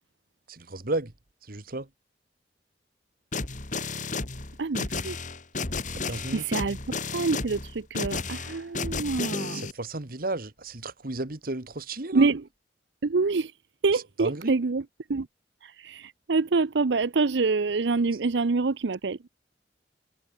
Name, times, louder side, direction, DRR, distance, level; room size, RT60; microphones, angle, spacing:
voice 1, 0.5-1.1 1.5-1.9 5.9-6.4 9.5-12.3 13.9-14.6, right 2 dB, 55° right, 1.8 m, -33 dB
sound 1, 3.3-9.7, left 4 dB, 45° left, 2.4 m, -33 dB
voice 2, 4.6-5.2 6.3-6.8 7.1-9.6 12.1-12.4 13.0-13.5 13.8-14.8 15.1-15.3 15.6-19.3, right 4 dB, 80° right, 0.6 m, -26 dB
head